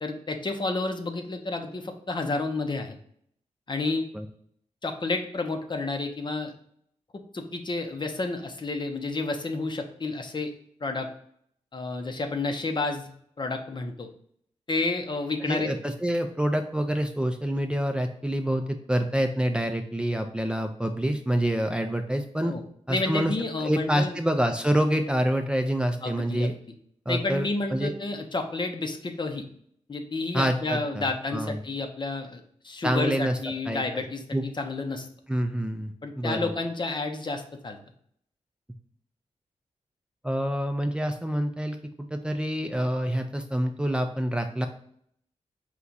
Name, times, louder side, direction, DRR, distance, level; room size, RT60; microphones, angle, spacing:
voice 1, 0.0-3.0 3.7-4.0 4.8-6.5 7.1-10.5 10.8-11.1 11.7-13.1 13.4-14.1 14.7-15.7 22.4-22.6 22.9-24.2 26.0-26.5 27.1-29.4 29.9-35.1 36.0-37.8, left 3 dB, 40° left, 5 dB, 0.7 m, -30 dB
voice 2, 15.4-22.5 22.9-23.3 23.6-26.5 27.1-27.9 30.3-31.6 32.8-33.4 33.7-34.0 34.3-34.4 35.3-36.5 40.2-41.8 42.1-44.7, equal, 10° right, 4 dB, 0.4 m, -27 dB
4.5 x 2.4 x 3.9 m, 0.66 s
cardioid pair, 70°, 12 cm